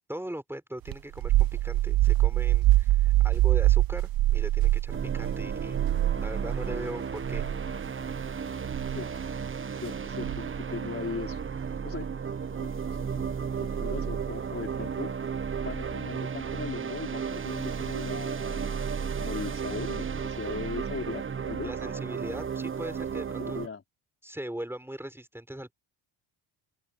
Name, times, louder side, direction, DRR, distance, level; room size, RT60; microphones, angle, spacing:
voice 1, 0.1-5.8 6.2-7.4 21.6-23.6 24.2-25.7, right 1 dB, 5° right, 5.3 m, -39 dB
sound 1, 0.9-6.7 7.2-7.5 8.7-9.0 10.2-10.6, right 16 dB, 50° right, 0.7 m, -24 dB
sound 2, 4.9-23.7, right 6 dB, 25° right, 1.2 m, -33 dB
voice 2, 9.6-11.4 11.8-12.1 12.6-12.7 13.0-15.1 15.6-18.9 19.2-21.7 23.4-23.8, left 5 dB, 30° left, 5.0 m, -38 dB
open air
cardioid pair, 105°, 47 cm